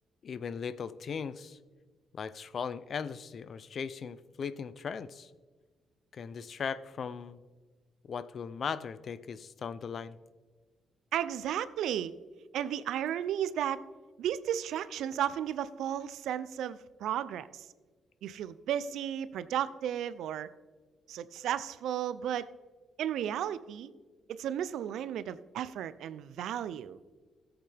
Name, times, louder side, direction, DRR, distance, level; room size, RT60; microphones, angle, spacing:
voice 1, 0.2-1.6 2.1-5.3 6.1-7.4 8.1-10.2, left 6 dB, 50° left, 15 dB, 0.5 m, -38 dB
voice 2, 11.1-12.1 12.5-13.8 14.2-17.7 18.2-20.5 21.1-22.5 23.0-23.9 24.3-27.0, right 10 dB, 80° right, 16 dB, 0.5 m, -34 dB
14.5 x 8.0 x 3.4 m, 1.4 s
cardioid pair, 90°, 0 cm